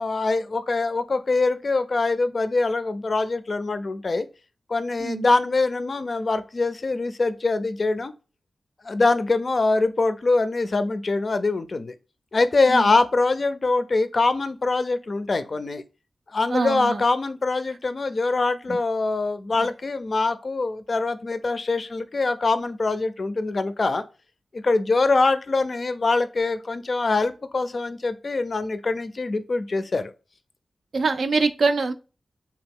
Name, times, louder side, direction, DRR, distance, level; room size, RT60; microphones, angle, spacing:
voice 1, 0.0-4.3 4.7-8.1 8.8-12.0 12.3-15.8 16.3-24.0 24.5-30.1, left 3 dB, 55° left, 0.4 m, -23 dB
voice 2, 16.5-17.0 18.7-18.8 30.9-31.9, right 4 dB, 75° right, 0.3 m, -24 dB
2.8 x 2.3 x 3.5 m
cardioid pair, 45°, 0 cm